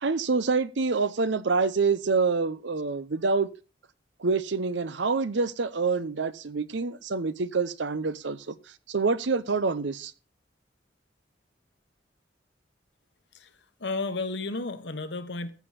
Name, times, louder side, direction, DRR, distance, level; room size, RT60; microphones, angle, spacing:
voice 1, 0.0-3.5 4.2-8.5 8.9-10.1, right 4 dB, 80° right, 0.7 m, -26 dB
voice 2, 13.8-15.5, left 3 dB, 70° left, 1.1 m, -32 dB
14.0 x 7.1 x 4.2 m
head